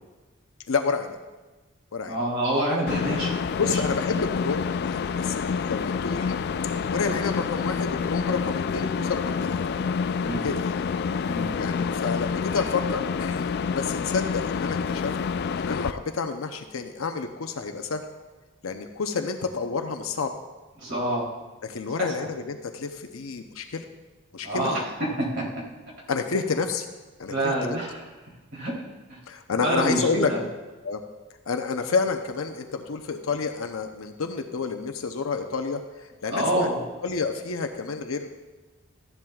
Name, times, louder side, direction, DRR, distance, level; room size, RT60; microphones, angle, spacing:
voice 1, 0.7-1.2 1.9-2.2 3.6-6.4 6.9-9.6 10.4-10.8 11.6-13.5 13.7-15.1 15.6-18.0 18.6-20.3 21.6-23.8 24.3-24.9 26.1-26.9 27.2-27.8 29.3-30.3 30.8-31.0 31.5-35.8 36.2-36.7 37.0-38.3, left 4 dB, 80° left, 6 dB, 0.7 m, -29 dB
voice 2, 2.1-3.7 10.2-10.6 11.3-11.6 20.8-21.3 22.0-22.3 24.4-25.5 27.3-28.0 28.5-28.8 29.1-29.2 29.6-30.4 36.3-36.8, right 1 dB, 60° right, -4 dB, 3.3 m, -27 dB
sound 1, 2.9-15.9, left 6 dB, 50° left, 0.3 m, -28 dB
14.5 x 11.0 x 2.3 m, 1.2 s
head